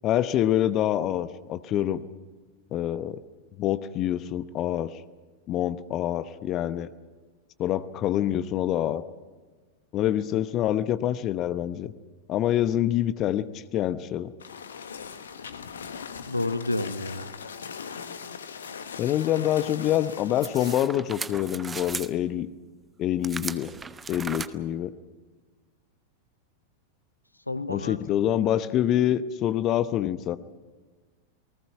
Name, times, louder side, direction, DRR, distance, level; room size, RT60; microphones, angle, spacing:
voice 1, 0.0-2.0 2.7-3.2 3.6-5.0 5.5-6.9 7.6-9.0 9.9-11.9 12.3-14.3 19.0-22.5 23.0-23.7 24.1-24.9 27.7-30.4, left 12 dB, 35° left, 14 dB, 0.9 m, -26 dB
sound 1, 14.4-20.8, left 6 dB, 65° left, 1.3 m, -40 dB
voice 2, 16.3-17.3 27.5-28.0, left 2 dB, 85° left, 14 dB, 0.9 m, -30 dB
sound 2, 20.4-22.1 23.2-24.5, right 5 dB, 15° right, 0.9 m, -37 dB
29.0 x 19.0 x 5.7 m, 1.3 s
figure-of-eight pair, 90°, 0 cm